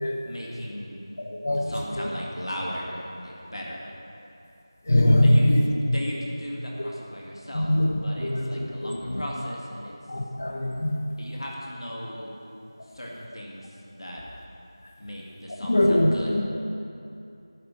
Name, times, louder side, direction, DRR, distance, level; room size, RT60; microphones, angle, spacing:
voice 1, 0.2-1.0 1.5-3.8 5.2-5.5 5.9-7.7 8.0-9.9 11.2-12.3 12.9-14.2 15.0-16.3, equal, 80° left, -3 dB, 2.0 m, -37 dB
voice 2, 1.2-2.1 4.8-5.7 7.5-9.2 10.1-11.1 14.8-14.9 15.6-16.4, left 1 dB, 30° left, 2 dB, 0.6 m, -23 dB
10.5 x 4.8 x 7.4 m, 2.7 s
figure-of-eight pair, 175°, 3 cm